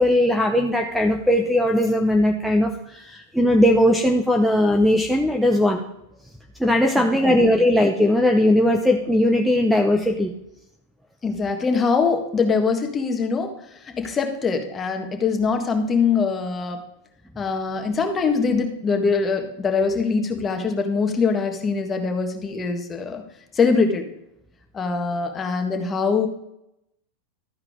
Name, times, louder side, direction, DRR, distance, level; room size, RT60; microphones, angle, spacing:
voice 1, 0.0-5.9 6.6-10.3, left 1 dB, ahead, 4 dB, 0.8 m, -19 dB
voice 2, 11.2-16.8 17.3-23.2 23.5-24.1 24.7-26.3, left 5 dB, 20° left, 4 dB, 1.6 m, -23 dB
13.0 x 4.8 x 5.0 m, 0.83 s
hypercardioid pair, 115°, 0 cm